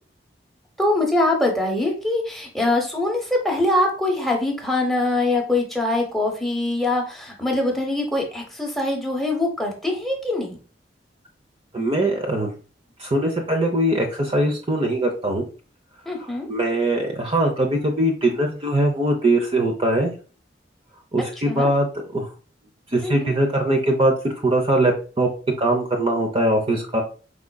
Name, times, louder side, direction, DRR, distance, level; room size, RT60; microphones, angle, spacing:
voice 1, 0.8-10.6 16.1-16.5 21.5-21.7 23.0-23.3, left 2 dB, ahead, 0 dB, 1.0 m, -23 dB
voice 2, 11.7-12.5 13.0-15.5 16.2-20.1 21.1-21.9 22.1-22.3 22.9-25.3 25.6-27.0, right 1 dB, 30° right, 2 dB, 0.6 m, -21 dB
4.8 x 3.7 x 2.2 m, 0.38 s
head